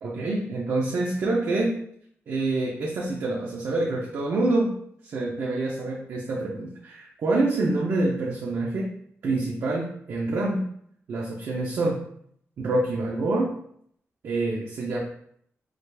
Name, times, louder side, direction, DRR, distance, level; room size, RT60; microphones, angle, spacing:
voice 1, 0.0-1.8 2.3-4.7 5.0-8.9 9.2-10.7 11.1-12.0 12.6-13.5 14.2-15.0, right 2 dB, 60° right, -4 dB, 0.7 m, -26 dB
4.9 x 2.4 x 3.3 m, 0.67 s
wide cardioid pair, 175°, 5 cm